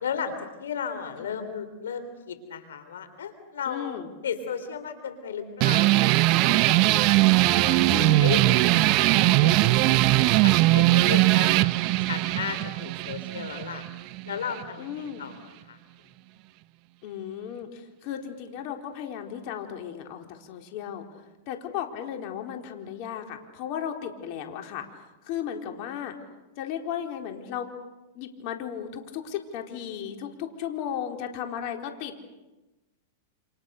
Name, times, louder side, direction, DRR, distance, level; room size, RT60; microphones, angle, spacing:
voice 1, 0.0-4.0 4.2-7.8 8.2-10.0 10.4-13.8 14.3-15.8, left 7 dB, 90° left, 10 dB, 3.7 m, -35 dB
voice 2, 3.7-4.1 7.8-8.3 14.8-15.3 17.0-21.0 21.5-24.9 25.2-26.1 26.6-27.7 28.1-32.2, left 9 dB, 50° left, 4 dB, 4.1 m, -35 dB
sound 1, 5.6-14.6, right 18 dB, 45° right, 0.8 m, -20 dB
29.0 x 28.5 x 6.8 m, 1.1 s
hypercardioid pair, 130°, 0 cm